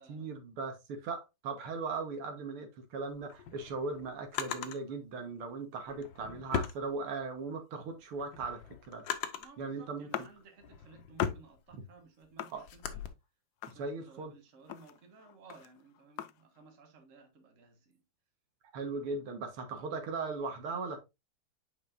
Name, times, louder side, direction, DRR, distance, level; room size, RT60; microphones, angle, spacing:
voice 1, 0.0-9.0 9.6-10.3 11.7-11.8 12.5-12.6 13.7-14.3 18.7-21.0, right 4 dB, 85° right, 2.2 m, -38 dB
Drawer open or close, 3.1-4.8 5.8-7.5 7.9-9.6 10.2-13.1, left 8 dB, 70° left, 1.5 m, -39 dB
voice 2, 9.4-13.0 13.6-18.0, right 4 dB, 40° right, 1.6 m, -57 dB
sound 1, 10.1-10.8 11.2-11.7 12.4-13.1 13.6-14.3 14.6-16.7, left 12 dB, 90° left, 0.8 m, -42 dB
8.0 x 5.3 x 2.5 m
omnidirectional pair, 2.3 m